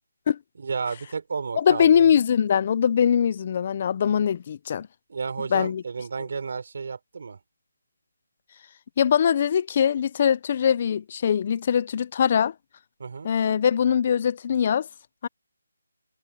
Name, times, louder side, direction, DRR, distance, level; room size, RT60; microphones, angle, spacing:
voice 1, 0.6-2.0 5.1-7.4 13.0-13.3, right 5 dB, 40° right, 4.6 m, -32 dB
voice 2, 1.6-4.9 5.5-5.8 9.0-12.5 13.2-14.9 15.2-15.3, left 8 dB, 20° left, 0.4 m, -22 dB
hypercardioid pair, 180°, 0 cm